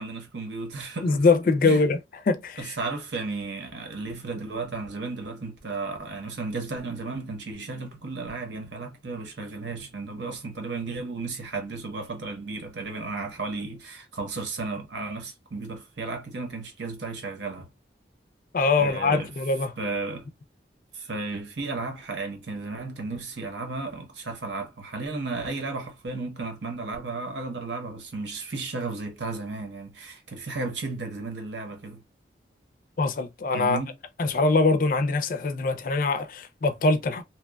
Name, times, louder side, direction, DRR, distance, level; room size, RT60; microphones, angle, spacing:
voice 1, 0.0-1.3 1.6-1.8 2.6-17.7 18.8-19.3 19.8-20.3 20.9-32.0 33.5-33.9, right 3 dB, 80° right, 0.9 m, -34 dB
voice 2, 1.0-2.0 2.3-2.8 18.5-19.7 33.0-33.8 34.2-37.2, left 3 dB, 50° left, 0.4 m, -23 dB
2.8 x 2.2 x 2.2 m
head